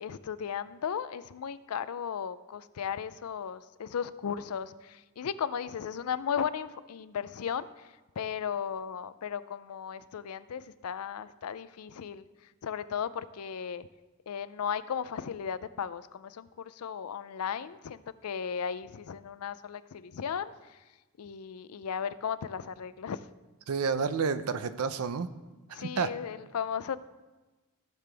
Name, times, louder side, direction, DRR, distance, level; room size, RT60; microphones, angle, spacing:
voice 1, 0.0-12.2 12.6-13.9 14.3-20.8 21.2-23.3 25.7-27.0, left 7 dB, 85° left, 15 dB, 0.4 m, -36 dB
voice 2, 23.7-25.3 25.7-26.1, right 5 dB, 90° right, 12 dB, 0.6 m, -30 dB
15.0 x 6.8 x 3.4 m, 1.2 s
head